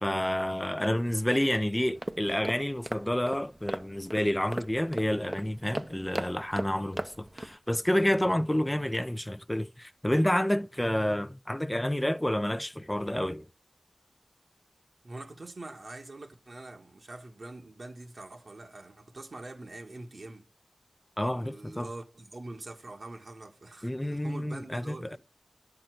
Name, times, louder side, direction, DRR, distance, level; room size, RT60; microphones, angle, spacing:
voice 1, 0.0-13.5 21.2-21.9 23.8-25.2, left 1 dB, 10° left, 0.5 m, -29 dB
woman walking fast on pavement hiheels, 1.8-7.6, right 1 dB, 25° right, 0.7 m, -38 dB
voice 2, 15.0-20.4 21.3-25.2, right 2 dB, 65° right, 1.7 m, -44 dB
11.0 x 5.7 x 7.8 m
wide cardioid pair, 55°, 0 cm